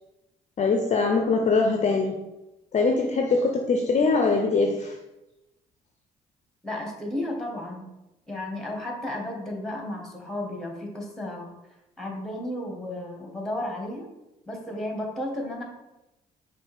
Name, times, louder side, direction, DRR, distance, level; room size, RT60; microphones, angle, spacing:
voice 1, 0.6-2.2 2.7-5.0, left 4 dB, 40° left, 3 dB, 0.6 m, -22 dB
voice 2, 6.6-7.9 8.3-11.5 12.0-14.1 14.4-15.6, left 1 dB, ahead, 0 dB, 1.5 m, -33 dB
5.3 x 2.7 x 3.5 m, 0.96 s
hypercardioid pair, 50°, 19 cm